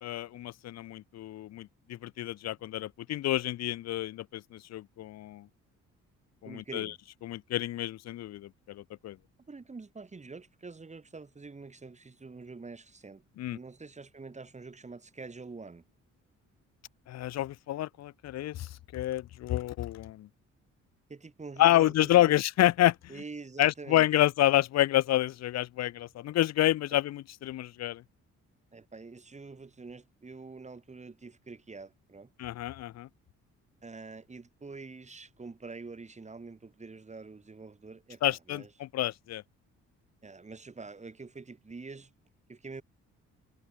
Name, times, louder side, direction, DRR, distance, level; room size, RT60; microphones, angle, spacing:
voice 1, 0.0-5.5 6.4-6.9 7.2-9.2 13.4-13.6 17.1-20.3 21.6-23.1 23.6-28.0 32.4-33.1 38.2-39.4, left 14 dB, 60° left, 0.6 m, -28 dB
voice 2, 6.5-7.0 9.5-13.2 13.5-15.8 21.1-22.4 23.1-24.1 28.7-32.3 33.8-38.7 40.2-42.1 42.5-42.8, right 4 dB, 25° right, 2.5 m, -46 dB
cardioid pair, 90°, 30 cm